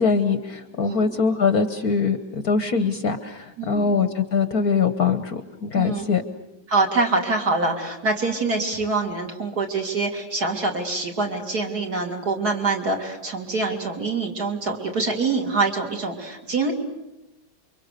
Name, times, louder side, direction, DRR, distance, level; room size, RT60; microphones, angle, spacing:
voice 1, 0.0-6.2, left 5 dB, 55° left, 9 dB, 1.3 m, -22 dB
voice 2, 3.6-3.9 5.7-6.0 6.7-16.7, right 3 dB, 50° right, 1 dB, 3.3 m, -25 dB
28.5 x 24.0 x 6.7 m, 0.95 s
omnidirectional pair, 2.2 m